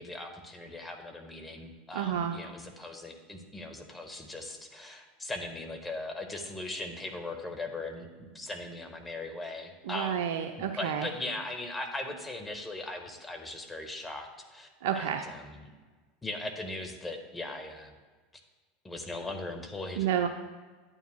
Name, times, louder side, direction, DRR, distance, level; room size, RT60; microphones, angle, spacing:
voice 1, 0.0-10.3 10.5-14.7 14.9-15.7 16.2-17.9 18.8-20.1, left 2 dB, 15° left, 4 dB, 1.5 m, -39 dB
voice 2, 1.9-2.3 9.9-11.1 14.8-15.2 20.0-20.3, right 9 dB, 70° right, 5 dB, 0.5 m, -30 dB
11.5 x 8.9 x 2.3 m, 1.4 s
hypercardioid pair, 85°, 0 cm